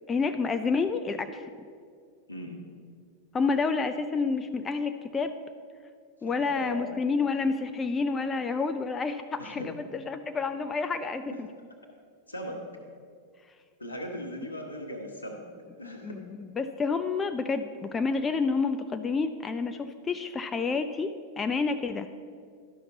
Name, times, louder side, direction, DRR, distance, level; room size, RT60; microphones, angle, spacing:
voice 1, 0.1-1.4 3.3-5.3 6.2-11.5 16.0-22.1, left 4 dB, 20° left, 9 dB, 0.3 m, -29 dB
voice 2, 6.3-6.9 9.4-9.7 11.3-11.4 12.3-12.6 13.8-15.4 15.8-16.2, equal, 80° left, 2 dB, 1.1 m, -38 dB
11.5 x 5.8 x 3.9 m, 2.1 s
figure-of-eight pair, 90°, 0 cm